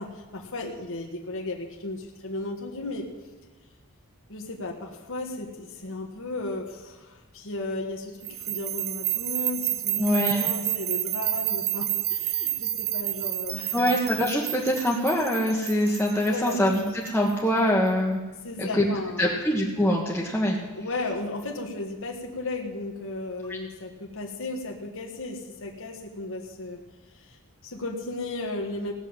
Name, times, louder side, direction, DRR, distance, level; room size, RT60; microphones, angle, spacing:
voice 1, 0.0-3.1 4.3-13.9 16.3-16.6 18.4-19.4 20.7-26.8 27.1-27.4 27.6-28.9, left 2 dB, 65° left, 1 dB, 1.7 m, -35 dB
sound 1, 8.2-17.3, right 13 dB, 50° right, 0.7 m, -30 dB
voice 2, 10.0-10.4 13.7-18.2 18.6-18.9 19.2-20.6 23.5-23.6, equal, 5° left, -5 dB, 1.5 m, -24 dB
17.5 x 7.0 x 8.9 m, 1.2 s
head